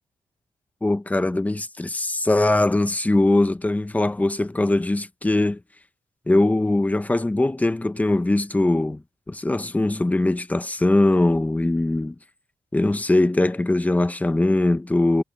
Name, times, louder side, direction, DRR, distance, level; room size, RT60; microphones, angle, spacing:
voice 1, 0.8-5.6 6.3-12.1 12.7-15.2, left 2 dB, 10° left, 0.8 m, -21 dB
wide cardioid pair, 130°, 12 cm